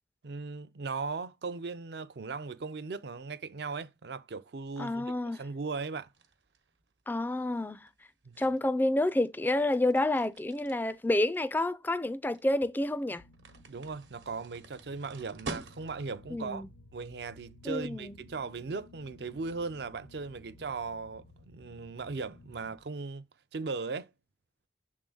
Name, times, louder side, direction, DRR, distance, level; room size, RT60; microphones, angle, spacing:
voice 1, 0.2-6.1 8.2-8.4 13.7-16.6 16.9-23.2 23.5-24.1, right 4 dB, 65° right, 0.5 m, -38 dB
voice 2, 4.8-5.4 7.1-7.9 8.4-13.2 16.3-16.7 17.6-18.2, left 1 dB, 10° left, 0.3 m, -29 dB
sound 1, 5.8-16.2, right 3 dB, 85° right, 1.2 m, -49 dB
sound 2, 13.2-22.8, left 2 dB, 70° left, 0.6 m, -56 dB
6.8 x 3.6 x 3.8 m
head